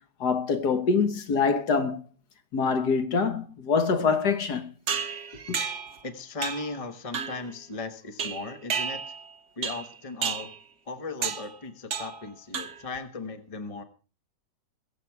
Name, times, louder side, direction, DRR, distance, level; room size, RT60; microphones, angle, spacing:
voice 1, 0.2-2.0 2.5-4.6 5.5-5.6, left 5 dB, 65° left, 1.8 m, -25 dB
sound 1, 4.9-6.0 6.4-6.8 7.1-7.5 8.2-9.3 9.6-9.9 10.2-10.6 11.2-11.5 11.9-12.2 12.5-13.0, right 6 dB, 50° right, 1.3 m, -32 dB
voice 2, 6.0-9.0 9.6-10.5 10.9-13.8, left 3 dB, 20° left, 1.1 m, -37 dB
22.0 x 7.7 x 4.7 m
omnidirectional pair, 1.9 m